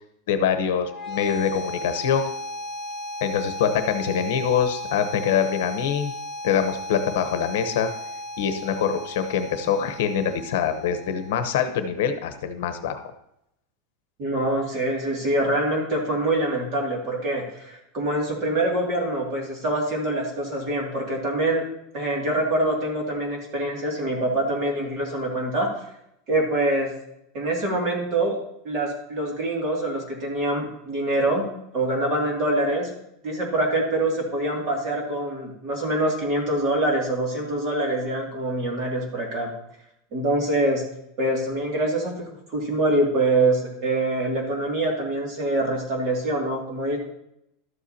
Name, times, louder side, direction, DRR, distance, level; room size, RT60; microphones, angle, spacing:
voice 1, 0.3-2.3 3.2-6.1 6.4-7.9 8.4-13.0, left 7 dB, 65° left, 9 dB, 0.9 m, -24 dB
sound 1, 0.8-11.8, left 1 dB, ahead, 1.9 m, -36 dB
voice 2, 14.2-21.6 21.9-25.7 26.3-26.9 27.3-28.4 28.6-31.5 31.7-32.9 33.2-39.5 40.1-40.8 41.2-47.0, right 1 dB, 35° right, -1 dB, 2.3 m, -25 dB
12.5 x 8.1 x 2.8 m, 0.80 s
supercardioid pair, 180°, 0 cm